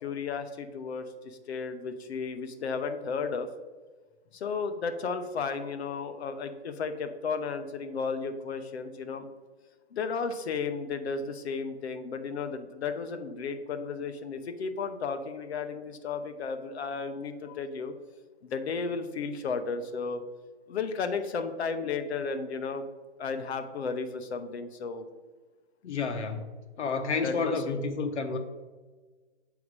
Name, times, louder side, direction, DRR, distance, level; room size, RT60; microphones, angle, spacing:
voice 1, 0.0-3.5 4.3-9.3 9.9-17.9 18.4-20.2 20.7-22.8 23.2-25.1 27.2-27.5, left 5 dB, 65° left, 0.8 m, -34 dB
voice 2, 25.8-26.5 26.8-28.4, left 4 dB, 90° left, 1.0 m, -30 dB
8.3 x 3.5 x 4.7 m
hypercardioid pair, 170°, 34 cm